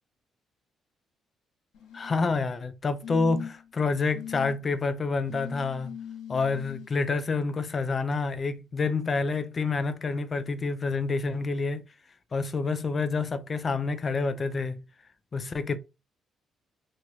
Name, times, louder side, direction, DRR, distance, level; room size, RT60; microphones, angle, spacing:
sound 1, 1.7-2.3 3.0-3.7 4.1-4.6 5.3-6.9 8.1-8.2, left 9 dB, 90° left, 1.2 m, -40 dB
voice 1, 1.9-5.9 6.3-11.8 12.3-14.8 15.3-15.8, left 4 dB, 40° left, 0.5 m, -28 dB
3.1 x 2.9 x 2.6 m
cardioid pair, 90°, 0 cm